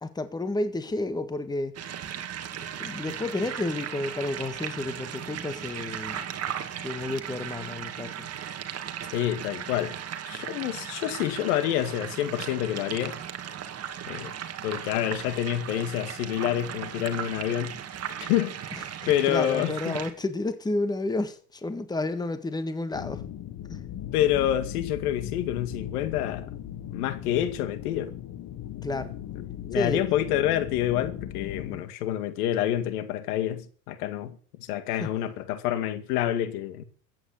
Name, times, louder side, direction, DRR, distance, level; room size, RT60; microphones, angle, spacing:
voice 1, 0.0-1.8 2.8-6.2 6.8-8.3 19.0-23.2 23.7-23.8 28.8-29.1 29.7-30.0 34.9-35.1, left 2 dB, 10° left, 1.7 m, -31 dB
sound 1, 1.7-20.1, right 9 dB, 35° right, 2.2 m, -37 dB
voice 2, 9.1-9.9 10.3-13.2 14.1-14.3 14.6-17.8 18.3-18.6 19.1-20.0 24.1-28.1 29.7-36.8, left 12 dB, 75° left, 2.3 m, -28 dB
sound 2, 22.9-31.8, left 11 dB, 40° left, 1.6 m, -38 dB
14.5 x 9.4 x 8.5 m
supercardioid pair, 120°, 46 cm